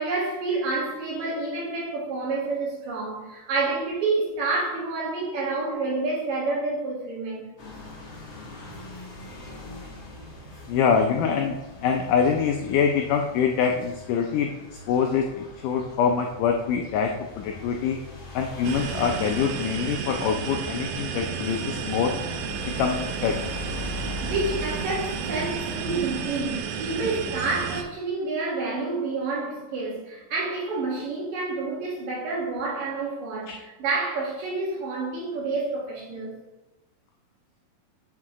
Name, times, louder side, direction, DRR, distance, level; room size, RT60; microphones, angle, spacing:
voice 1, 0.0-7.5 24.0-36.3, right 3 dB, 65° right, 3.2 m, -29 dB
sound 1, 7.6-26.4, left 2 dB, 45° left, 1.6 m, -41 dB
voice 2, 10.7-14.5 14.9-18.0 18.4-22.1 22.8-23.4, left 6 dB, 85° left, 1.8 m, -24 dB
sound 2, 18.6-27.8, right 7 dB, 85° right, 1.7 m, -32 dB
7.5 x 6.8 x 3.0 m
omnidirectional pair, 4.3 m